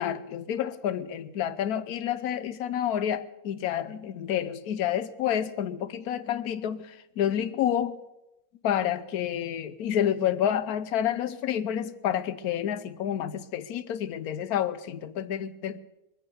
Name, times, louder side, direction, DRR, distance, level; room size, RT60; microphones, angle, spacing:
voice 1, 0.0-8.0 8.6-15.8, left 10 dB, 75° left, 1.2 m, -29 dB
20.5 x 9.0 x 6.9 m
omnidirectional pair, 1.6 m